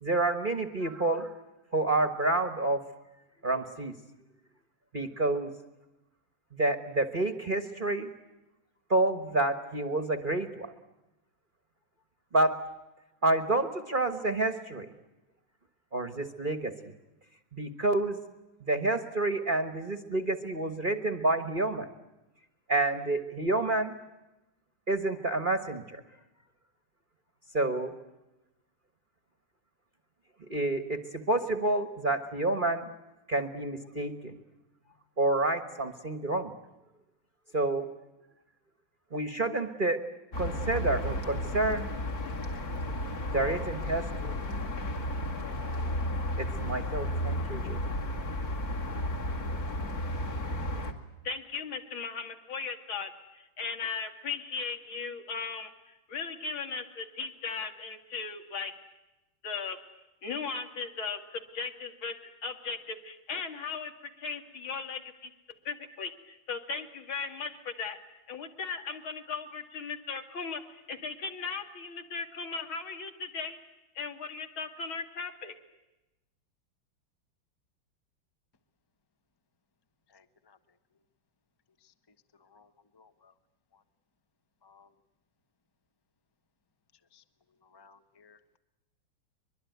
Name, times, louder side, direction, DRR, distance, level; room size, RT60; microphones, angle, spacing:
voice 1, 0.0-1.3 1.7-2.9 3.4-4.0 4.9-5.5 6.5-8.1 8.9-10.7 12.3-12.6 13.2-14.9 15.9-16.7 17.5-18.2 18.6-21.9 22.7-24.0 24.9-26.0 27.5-27.9 30.4-32.9 33.3-34.3 35.2-36.5 37.5-37.9 39.1-40.0 40.4-41.9 43.3-44.3 46.4-47.8, right 2 dB, 30° right, 9 dB, 1.1 m, -29 dB
sound 1, 40.3-50.9, left 1 dB, 45° left, 2.8 m, -33 dB
voice 2, 51.2-55.7 56.1-58.7 59.4-59.8 60.2-62.1 62.4-63.9 64.2-65.3 65.6-68.0 68.3-73.6 74.0-75.5, left 5 dB, 75° left, 5 dB, 3.0 m, -37 dB
voice 3, 80.1-80.6 81.8-81.9 82.4-83.3 84.6-84.9 87.1-87.2 87.6-88.6, left 5 dB, 20° left, 9 dB, 0.6 m, -61 dB
23.5 x 22.5 x 9.3 m, 0.99 s
omnidirectional pair, 2.2 m